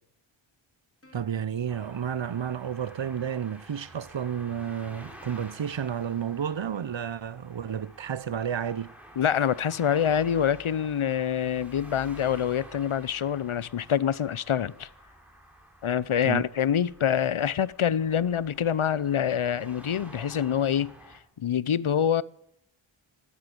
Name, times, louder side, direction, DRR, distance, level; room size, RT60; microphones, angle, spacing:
Plucked string instrument, 1.0-3.8, left 1 dB, 25° left, 3.5 m, -63 dB
voice 1, 1.1-8.9 16.2-16.4, right 8 dB, 65° right, 0.7 m, -31 dB
sound 1, 1.7-21.2, right 1 dB, 5° right, 4.1 m, -50 dB
voice 2, 9.2-14.9 15.8-22.2, left 9 dB, 80° left, 0.7 m, -26 dB
13.0 x 12.0 x 8.7 m
wide cardioid pair, 45°, 49 cm